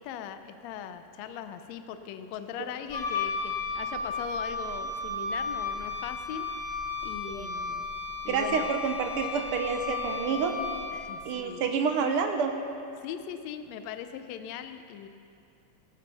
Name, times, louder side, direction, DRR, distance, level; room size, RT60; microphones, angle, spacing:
voice 1, 0.0-7.9 8.2-8.7 10.9-11.6 13.0-15.1, left 8 dB, 75° left, 9 dB, 1.7 m, -40 dB
Wind instrument woodwind instrument, 2.9-11.2, left 4 dB, 50° left, 0.7 m, -34 dB
voice 2, 8.3-10.5 11.2-12.6, right 6 dB, 75° right, 5 dB, 1.3 m, -28 dB
18.0 x 14.5 x 4.2 m, 2.5 s
omnidirectional pair, 3.4 m